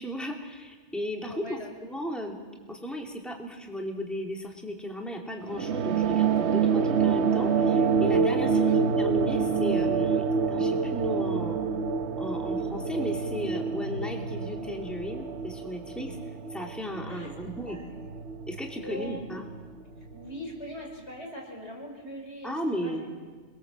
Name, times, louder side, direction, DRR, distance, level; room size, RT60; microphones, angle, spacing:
voice 1, 0.0-2.4 2.7-11.6 12.2-16.2 16.5-17.8 18.5-19.4 22.4-23.0, equal, ahead, 0 dB, 2.6 m, -35 dB
voice 2, 1.3-1.7 8.5-8.8 17.0-18.0 18.8-19.2 20.1-23.2, equal, 85° left, -1 dB, 5.7 m, -42 dB
sound 1, 5.5-20.4, right 5 dB, 85° right, 1.3 m, -27 dB
28.5 x 21.5 x 7.6 m, 1.5 s
omnidirectional pair, 1.1 m